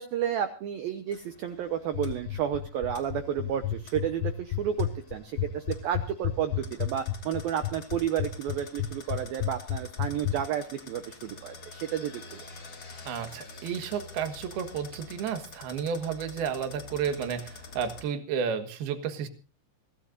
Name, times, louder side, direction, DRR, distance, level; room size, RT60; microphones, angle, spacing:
voice 1, 0.0-12.4, right 9 dB, 85° right, 8 dB, 2.0 m, -31 dB
sound 1, 1.1-18.0, left 3 dB, 30° left, 2.8 m, -48 dB
sound 2, 1.9-10.4, left 13 dB, 75° left, 3.0 m, -30 dB
voice 2, 13.1-19.3, right 7 dB, 65° right, 8 dB, 2.9 m, -32 dB
25.5 x 16.0 x 2.6 m, 0.37 s
omnidirectional pair, 5.6 m